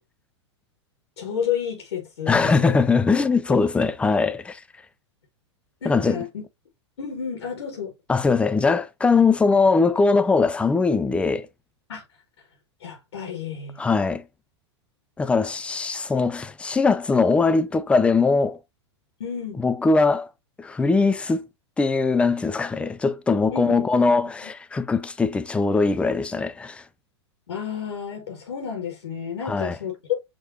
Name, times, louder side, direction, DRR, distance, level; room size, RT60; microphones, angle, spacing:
voice 1, 1.2-2.8 5.8-6.4 7.0-7.9 11.9-12.0 12.8-13.8 19.2-19.6 23.5-24.1 27.5-30.2, left 8 dB, 70° left, 1.6 m, -31 dB
voice 2, 2.3-4.6 5.8-6.2 8.1-11.5 13.8-14.2 15.2-18.6 19.6-20.3 20.6-21.5 21.8-26.8 29.4-29.8, left 4 dB, 10° left, 0.4 m, -21 dB
6.3 x 3.0 x 2.6 m
figure-of-eight pair, 95°, 15 cm